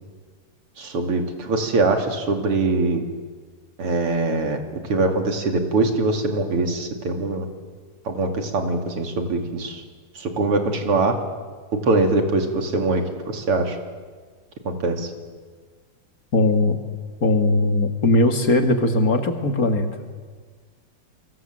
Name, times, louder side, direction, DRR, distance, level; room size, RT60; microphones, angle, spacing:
voice 1, 0.8-3.0 3.8-4.6 4.9-7.5 8.1-9.8 10.2-11.2 11.8-13.0 13.3-13.8 14.7-15.1, right 3 dB, 90° right, 4 dB, 3.6 m, -22 dB
voice 2, 16.3-16.8 17.2-19.9, left 2 dB, 40° left, 6 dB, 2.4 m, -19 dB
29.5 x 23.5 x 7.7 m, 1.5 s
omnidirectional pair, 2.4 m